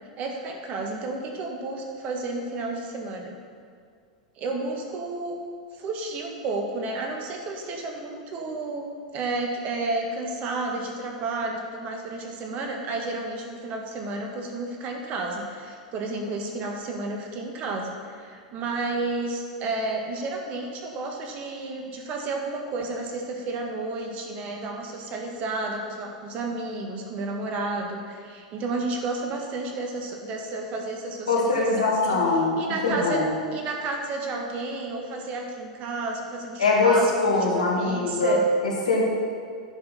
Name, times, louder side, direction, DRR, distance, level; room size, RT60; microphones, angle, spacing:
voice 1, 0.2-3.3 4.4-5.4 5.7-8.8 9.1-32.2 32.6-33.2 33.5-38.4, right 2 dB, 40° right, 1 dB, 1.7 m, -31 dB
voice 2, 31.3-32.5 32.8-33.3 36.6-37.0 37.2-39.0, left 3 dB, 80° left, -3 dB, 2.3 m, -22 dB
9.8 x 5.8 x 5.8 m, 2.1 s
figure-of-eight pair, 95°, 4 cm